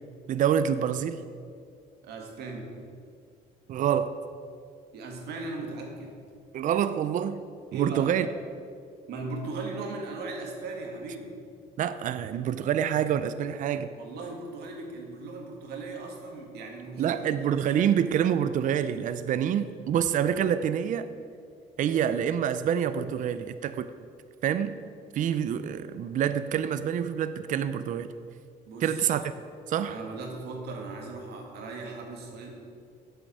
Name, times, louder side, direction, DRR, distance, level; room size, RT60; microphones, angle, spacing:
voice 1, 0.3-1.2 3.7-4.2 6.5-7.4 7.7-8.3 11.8-13.9 17.0-21.1 21.8-23.9 24.4-24.8 25.1-28.1 28.8-29.3 29.7-30.0, right 9 dB, 50° right, 12 dB, 0.5 m, -27 dB
voice 2, 2.0-2.7 4.9-6.2 7.7-8.1 9.1-11.4 14.0-17.3 17.7-18.0 28.7-29.0 29.9-32.5, right 3 dB, 75° right, 1 dB, 1.9 m, -38 dB
8.1 x 7.9 x 6.2 m, 2.2 s
cardioid pair, 110°, 17 cm